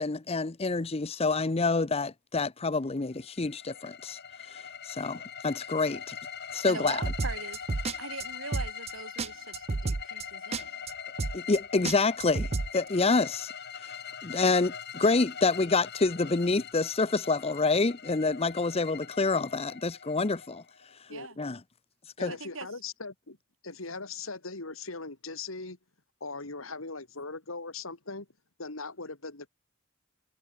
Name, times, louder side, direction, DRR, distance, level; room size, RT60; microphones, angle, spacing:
voice 1, 0.0-4.2 4.5-6.2 6.5-7.0 11.3-12.5 12.7-13.5 13.8-13.9 14.2-20.6 21.4-21.6 22.2-22.3, left 3 dB, 30° left, 0.7 m, -27 dB
sound 1, 3.1-21.0, left 8 dB, 50° left, 4.5 m, -42 dB
voice 2, 6.7-10.7 21.1-21.4 22.3-22.7, right 4 dB, 70° right, 4.3 m, -41 dB
sound 2, 6.9-7.9 8.2-8.3 8.5-8.9 9.2-9.3 9.5-10.2 10.5-10.6 10.9-11.0 11.2-11.6 11.8-12.7, right 3 dB, 30° right, 0.4 m, -30 dB
voice 3, 22.2-23.4 23.6-25.8 26.2-28.3 28.6-29.5, left 3 dB, 75° left, 3.0 m, -39 dB
head